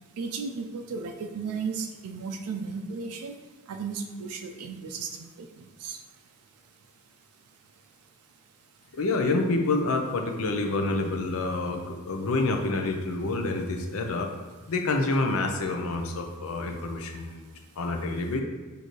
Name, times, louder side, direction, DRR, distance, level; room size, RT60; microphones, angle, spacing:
voice 1, 0.2-3.3 3.7-5.3 5.8-6.0, right 5 dB, 80° right, 4 dB, 0.4 m, -34 dB
voice 2, 8.9-14.3 14.7-17.4 17.8-18.4, left 2 dB, 70° left, 3 dB, 0.6 m, -27 dB
6.4 x 2.7 x 3.1 m, 1.3 s
head